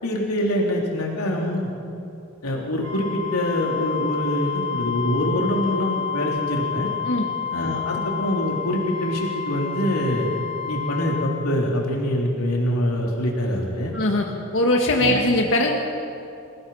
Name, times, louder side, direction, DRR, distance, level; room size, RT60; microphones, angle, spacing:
voice 1, 0.0-1.7 2.4-6.9 7.5-10.3 10.7-13.9 15.0-15.2, equal, 80° left, -2 dB, 3.3 m, -24 dB
Wind instrument woodwind instrument, 2.8-11.4, left 8 dB, 70° right, 3.1 m, -29 dB
voice 2, 13.9-14.3 14.5-15.7, left 1 dB, 60° left, 1 dB, 1.8 m, -20 dB
28.5 x 17.0 x 5.6 m, 2.7 s
head